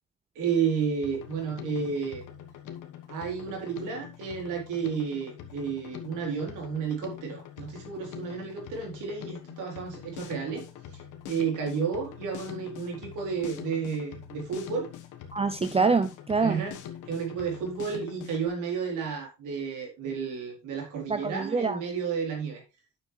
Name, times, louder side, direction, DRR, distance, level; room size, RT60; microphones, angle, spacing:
voice 1, 0.4-2.2 3.1-10.6 10.9-14.9 16.4-16.8 17.1-22.6, right 6 dB, 90° right, 3.6 m, -32 dB
Drum kit, 1.0-18.5, left 9 dB, 85° left, 1.3 m, -44 dB
voice 2, 15.3-16.6 21.1-21.8, right 4 dB, 20° right, 0.6 m, -25 dB
9.2 x 6.8 x 3.2 m
cardioid pair, 90°, 30 cm